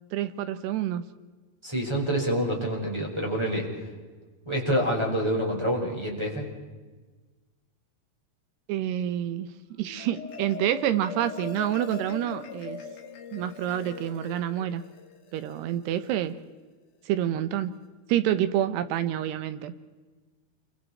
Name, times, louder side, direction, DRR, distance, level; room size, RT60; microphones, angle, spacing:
voice 1, 0.1-1.0 8.7-9.5 9.8-12.8 13.3-14.8 15.3-16.3 17.1-17.7 18.1-19.7, right 11 dB, 90° right, 11 dB, 3.2 m, -28 dB
voice 2, 1.6-3.7 4.4-6.5, equal, 5° right, -1 dB, 4.4 m, -27 dB
Marimba xylophone, 9.7-16.3, left 5 dB, 55° left, 3.4 m, -41 dB
28.5 x 24.5 x 4.3 m, 1.3 s
omnidirectional pair, 4.7 m